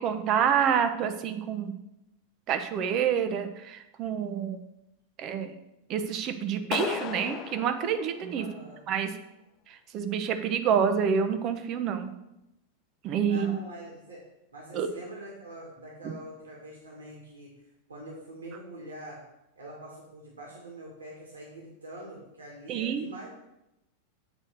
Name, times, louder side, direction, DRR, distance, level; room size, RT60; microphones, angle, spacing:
voice 1, 0.0-1.7 2.5-4.6 5.2-5.5 5.9-8.5 8.9-9.1 9.7-12.1 13.0-13.6 14.7-14.9 22.7-23.1, right 7 dB, 35° right, 8 dB, 0.8 m, -28 dB
Clapping, 6.7-8.8, left 9 dB, 35° left, 0.5 m, -36 dB
voice 2, 8.4-8.8 13.2-14.2 14.5-17.5 17.9-19.2 19.6-23.3, right 1 dB, 75° right, -3 dB, 1.9 m, -44 dB
8.0 x 4.3 x 6.5 m, 0.89 s
figure-of-eight pair, 90°, 0 cm